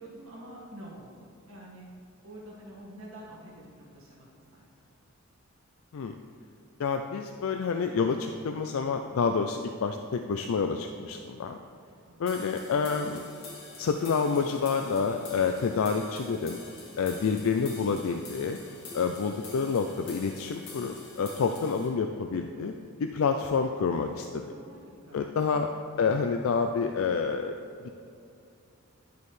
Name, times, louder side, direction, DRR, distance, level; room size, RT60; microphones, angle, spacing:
voice 1, 0.0-1.9 2.2-4.7 12.0-12.2 24.4-24.8 25.1-25.4, right 1 dB, 80° right, -4 dB, 1.7 m, -47 dB
voice 2, 6.8-11.6 12.2-13.3 13.8-16.6 17.0-18.6 18.9-22.7 23.0-24.3 25.1-25.7 26.0-27.5 27.8-27.9, left 5 dB, 80° left, 5 dB, 0.4 m, -28 dB
sound 1, 12.3-21.9, left 2 dB, 60° left, 2.1 m, -46 dB
10.5 x 6.9 x 3.2 m, 2.5 s
head